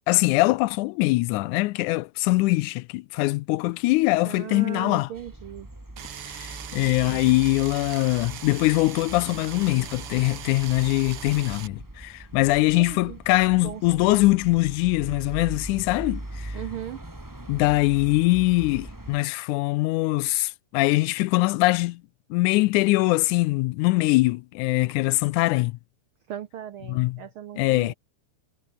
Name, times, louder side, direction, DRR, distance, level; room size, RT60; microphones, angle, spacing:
voice 1, 0.1-5.1 6.3-16.6 17.5-22.0 22.3-25.8 26.9-27.2 27.6-27.9, left 20 dB, 80° left, 1.9 m, -22 dB
voice 2, 4.2-5.7 7.0-7.3 12.8-13.2 13.6-14.2 16.5-17.0 26.3-27.9, right 11 dB, 80° right, 1.2 m, -38 dB
sound 1, 5.1-19.2, right 1 dB, 5° right, 1.7 m, -41 dB
sound 2, 6.0-11.7, right 9 dB, 50° right, 2.2 m, -40 dB
omnidirectional pair, 3.6 m